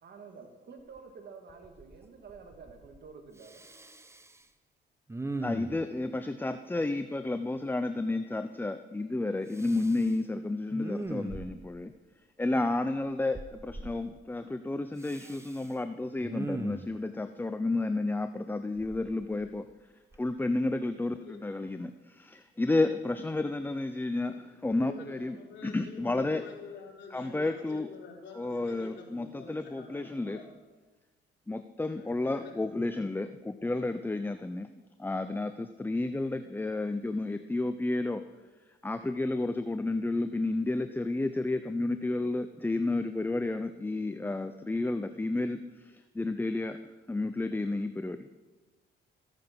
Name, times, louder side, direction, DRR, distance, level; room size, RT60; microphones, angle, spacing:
voice 1, 0.0-3.6, right 5 dB, 55° right, 4 dB, 2.0 m, -49 dB
Respiratory sounds, 1.0-1.1 1.5-2.0 2.3-3.0 3.4-4.4 5.1-5.9 9.5-10.1 10.7-11.8 13.3-13.9 15.0-15.7 16.2-17.0 18.8-19.7 20.1-20.3, right 2 dB, 15° right, 0.9 m, -40 dB
voice 2, 5.4-11.9 12.4-19.7 20.2-24.4 24.6-25.4 25.6-26.4 27.1-27.9 28.4-30.4 31.5-34.7 35.0-38.2 38.8-46.8 47.1-48.3, left 2 dB, 10° left, 9 dB, 0.5 m, -31 dB
voice 3, 24.1-30.4 32.0-32.5, left 5 dB, 70° left, -2 dB, 3.6 m, -48 dB
14.5 x 8.9 x 6.0 m, 1.3 s
cardioid pair, 90°, 20 cm